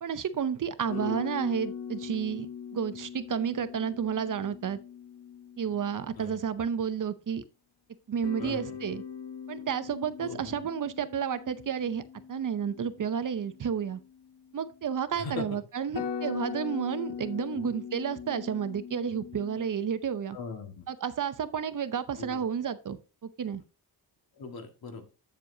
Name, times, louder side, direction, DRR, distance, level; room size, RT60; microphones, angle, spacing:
voice 1, 0.0-4.8 5.6-7.4 8.1-9.0 9.5-12.0 12.3-14.0 14.5-20.4 20.9-23.6, right 7 dB, 50° right, 0.7 m, -31 dB
sound 1, 0.9-6.2 8.2-14.8 15.6-15.7 16.0-19.7, left 7 dB, 80° left, 1.0 m, -41 dB
voice 2, 8.4-8.8 10.2-10.5 15.1-15.5 17.5-17.6 20.3-20.9 22.2-22.4 24.4-25.1, left 4 dB, 60° left, 1.8 m, -39 dB
8.6 x 7.4 x 2.7 m
cardioid pair, 95°, 40 cm